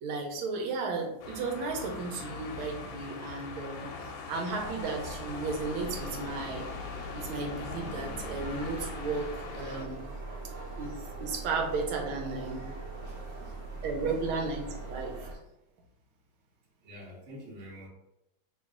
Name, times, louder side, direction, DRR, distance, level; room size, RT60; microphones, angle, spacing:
voice 1, 0.0-3.9 4.3-6.7 7.1-10.0 10.8-10.9 11.2-12.6 13.8-15.1, right 4 dB, 85° right, 1 dB, 1.5 m, -34 dB
sound 1, 1.2-9.9, left 4 dB, 80° left, 1.3 m, -41 dB
sound 2, 4.5-15.3, right 3 dB, 65° right, 1.5 m, -42 dB
voice 2, 13.0-13.5 13.8-13.9 16.8-17.9, equal, 40° right, -3 dB, 1.2 m, -48 dB
3.1 x 3.0 x 3.5 m, 0.90 s
omnidirectional pair, 2.2 m